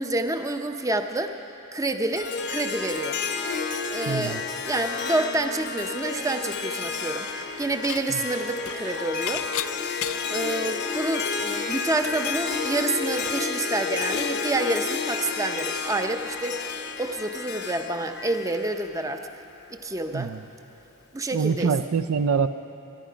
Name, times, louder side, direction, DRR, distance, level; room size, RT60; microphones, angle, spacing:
voice 1, 0.0-1.3 1.7-3.2 3.9-7.3 7.6-9.5 10.3-16.6 17.0-19.3 19.7-20.3 21.1-21.7, right 2 dB, 15° right, 6 dB, 0.6 m, -28 dB
Harp, 2.1-19.4, left 5 dB, 50° left, 0.8 m, -31 dB
voice 2, 4.1-4.4 8.1-8.2 20.1-20.4 21.3-22.5, right 6 dB, 75° right, 11 dB, 0.4 m, -25 dB
Cheering, 5.9-7.5 7.8-9.3 9.6-11.0 11.3-12.8 13.0-14.5 14.8-16.2, right 2 dB, 55° right, 3.1 m, -45 dB
Dishes pots and pans / Chink clink, 7.3-8.0 8.3-10.4 10.9-11.0 11.2-14.3, left 12 dB, 65° left, 0.4 m, -37 dB
23.0 x 11.5 x 5.1 m, 2.8 s
head